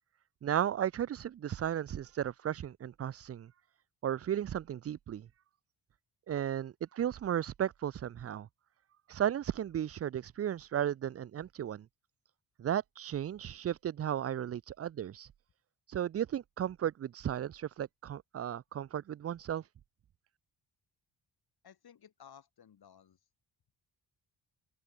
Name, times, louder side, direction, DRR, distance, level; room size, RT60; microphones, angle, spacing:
voice 1, 0.4-3.5 4.0-5.3 6.3-8.5 9.1-11.9 12.6-15.3 15.9-19.6, right 10 dB, 35° right, 0.4 m, -35 dB
voice 2, 21.6-23.2, left 8 dB, 60° left, 7.1 m, -57 dB
wide cardioid pair, 130°, 42 cm